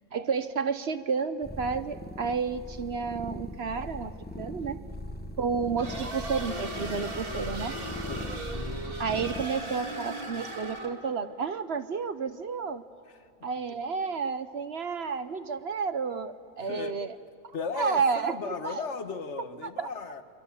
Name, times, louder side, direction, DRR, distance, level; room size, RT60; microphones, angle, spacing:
voice 1, 0.1-4.8 5.4-7.8 9.0-12.8 13.4-17.1 17.7-18.9 19.6-19.9, right 5 dB, 50° right, 11 dB, 0.8 m, -31 dB
sound 1, 1.4-9.5, left 1 dB, 10° left, 0.9 m, -40 dB
sound 2, 5.8-11.1, right 1 dB, 35° right, 2.2 m, -37 dB
voice 2, 13.1-13.5 16.6-17.0 17.5-20.2, left 5 dB, 45° left, 9 dB, 1.4 m, -36 dB
28.5 x 25.0 x 7.2 m, 2.4 s
omnidirectional pair, 1.7 m